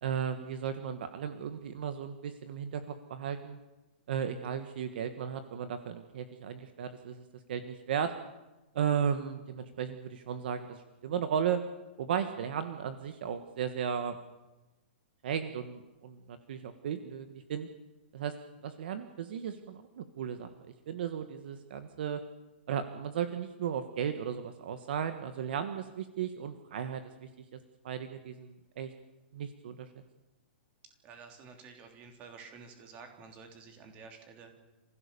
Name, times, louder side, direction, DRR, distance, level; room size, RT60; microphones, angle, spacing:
voice 1, 0.0-3.6 4.1-8.1 8.7-11.6 12.0-14.2 15.2-17.7 18.1-18.3 18.6-22.2 22.7-27.6 27.8-28.9 29.3-29.9, right 8 dB, 55° right, 9 dB, 1.5 m, -35 dB
voice 2, 31.0-34.6, right 5 dB, 20° right, 4 dB, 3.2 m, -51 dB
29.0 x 16.0 x 6.9 m, 1.1 s
hypercardioid pair, 170°, 6 cm